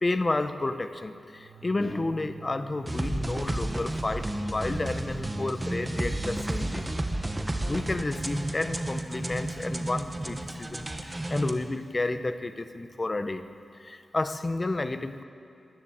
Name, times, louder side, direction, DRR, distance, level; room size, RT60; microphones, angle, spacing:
voice 1, 0.0-6.8 7.7-13.4 13.7-15.2, left 2 dB, 30° left, 10 dB, 0.8 m, -31 dB
sound 1, 1.3-10.8, right 6 dB, 45° right, 1.2 m, -48 dB
sound 2, 2.9-11.5, right 1 dB, 15° right, 1.0 m, -32 dB
14.0 x 10.5 x 9.9 m, 2.5 s
wide cardioid pair, 120°, 0 cm